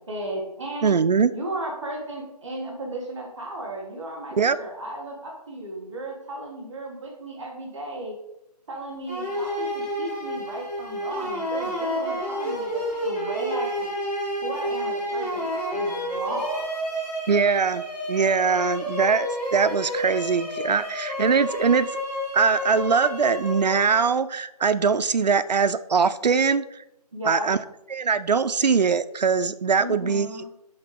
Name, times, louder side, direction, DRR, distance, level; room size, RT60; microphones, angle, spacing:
voice 1, 0.1-0.9 1.3-8.2 8.7-13.9 14.4-15.4 15.7-16.6 27.1-27.5 29.8-30.5, right 1 dB, 5° right, -13 dB, 0.5 m, -34 dB
voice 2, 0.8-1.3 4.4-4.6 17.3-21.9 22.3-26.6 27.3-27.6 27.9-30.3, right 5 dB, 85° right, 12 dB, 0.6 m, -22 dB
sound 1, 9.1-24.1, equal, 15° left, 2.5 m, -30 dB
6.9 x 4.0 x 5.3 m, 0.85 s
figure-of-eight pair, 175°, 21 cm